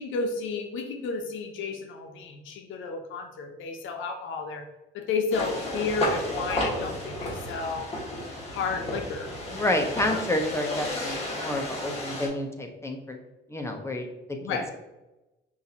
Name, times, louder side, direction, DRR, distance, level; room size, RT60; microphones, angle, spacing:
voice 1, 0.0-4.6 4.9-7.9 8.5-9.3 10.0-10.3 14.4-14.7, left 4 dB, 80° left, 5 dB, 0.6 m, -32 dB
sound 1, 5.3-12.3, left 1 dB, 30° left, 1.5 m, -32 dB
voice 2, 9.5-13.2 13.5-14.1 14.5-14.8, left 1 dB, 15° left, 3 dB, 0.7 m, -29 dB
5.5 x 2.5 x 2.8 m, 1.0 s
cardioid pair, 90°, 20 cm